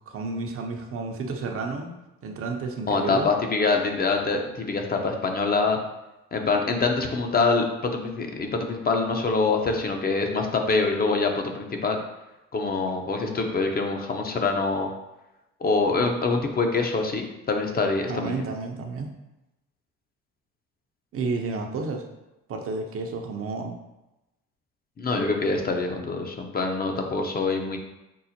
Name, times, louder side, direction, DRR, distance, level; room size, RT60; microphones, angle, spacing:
voice 1, 0.1-1.9 2.2-3.3 18.1-19.1 21.1-22.0 22.5-23.8, right 3 dB, 50° right, 3 dB, 0.6 m, -31 dB
voice 2, 2.9-5.8 6.3-12.0 12.5-14.9 15.6-18.4 25.0-27.8, left 3 dB, 30° left, 3 dB, 0.6 m, -25 dB
5.4 x 2.0 x 2.8 m, 0.97 s
supercardioid pair, 65°, 30 cm